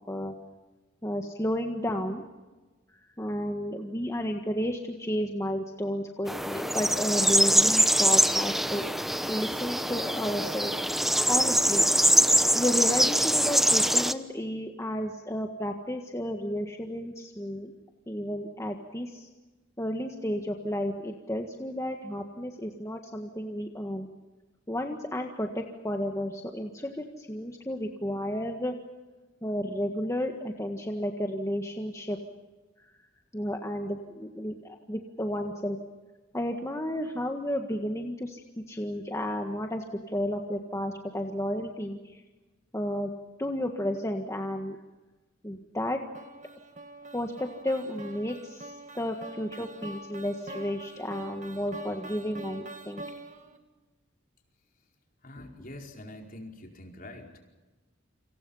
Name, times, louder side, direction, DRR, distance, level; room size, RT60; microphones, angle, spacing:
voice 1, 1.0-2.2 3.0-8.9 9.3-10.7 11.3-11.9 12.5-17.7 18.1-19.3 19.8-24.1 24.7-28.7 29.4-32.2 32.8-32.9 33.3-35.8 36.3-38.4 38.7-42.2 42.7-43.1 43.4-44.8 45.4-46.0 47.1-53.0, equal, 15° left, 3 dB, 1.6 m, -32 dB
sound 1, 6.3-14.1, equal, ahead, 0.9 m, -23 dB
sound 2, 46.1-53.6, right 2 dB, 40° right, 2.4 m, -44 dB
voice 2, 55.2-57.4, left 1 dB, 45° left, 2 dB, 4.9 m, -44 dB
29.0 x 27.0 x 5.6 m, 1.2 s
head